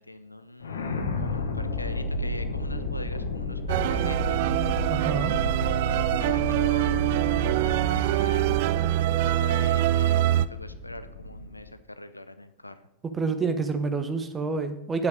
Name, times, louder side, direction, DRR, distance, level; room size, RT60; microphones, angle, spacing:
voice 1, 0.0-4.4 6.1-7.2 7.5-8.5 9.2-12.8, left 1 dB, 85° left, 11 dB, 0.6 m, -42 dB
sound 1, 0.6-11.7, left 3 dB, 65° left, 1.1 m, -33 dB
sound 2, 3.7-10.5, right 14 dB, 50° right, 0.4 m, -24 dB
voice 2, 4.9-5.3 13.1-15.1, right 4 dB, 20° right, 8 dB, 1.1 m, -28 dB
9.8 x 8.3 x 5.0 m, 0.82 s
figure-of-eight pair, 90°, 0 cm